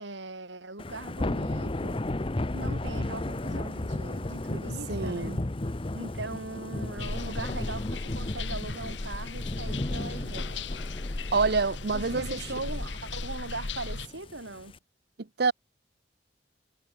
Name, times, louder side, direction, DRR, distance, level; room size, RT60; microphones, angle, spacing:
voice 1, 0.0-2.0 2.5-5.4 5.9-10.7 11.9-14.8, right 2 dB, 80° right, 4.8 m, -40 dB
Thunder / Rain, 0.8-14.8, left 1 dB, 30° left, 0.8 m, -34 dB
voice 2, 4.9-5.4 11.3-12.4 15.2-15.5, right 4 dB, 60° right, 0.8 m, -27 dB
sound 1, 7.0-14.1, left 3 dB, 75° left, 1.4 m, -36 dB
head